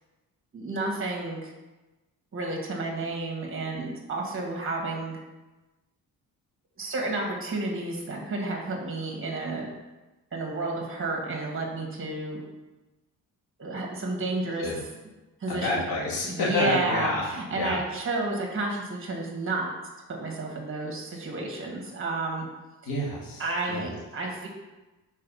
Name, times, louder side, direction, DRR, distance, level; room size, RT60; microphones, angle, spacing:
voice 1, 0.5-1.5 2.3-5.2 6.8-9.7 10.3-12.4 13.6-14.7 15.4-15.8 16.2-19.7 20.1-22.4 23.4-24.5, right 2 dB, 35° right, 0 dB, 1.7 m, -31 dB
voice 2, 15.5-17.2 17.5-17.8 22.8-23.9, left 2 dB, 70° left, -6 dB, 2.1 m, -29 dB
5.6 x 4.1 x 5.5 m, 1.1 s
cardioid pair, 120°, 37 cm